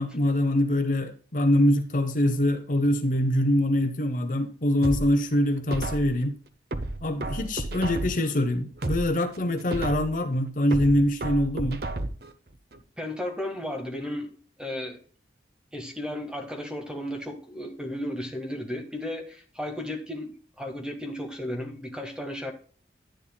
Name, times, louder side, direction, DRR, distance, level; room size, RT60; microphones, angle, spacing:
voice 1, 0.0-6.3 7.0-11.8, left 1 dB, 45° left, 0.8 m, -24 dB
sound 1, 4.8-6.2 6.7-8.3 8.7-10.2 10.7-12.3 12.7-12.8, right 2 dB, 60° right, 0.8 m, -32 dB
voice 2, 13.0-14.3 14.6-15.0 15.7-20.3 20.6-22.5, left 1 dB, 5° right, 1.6 m, -34 dB
10.5 x 10.0 x 2.3 m
head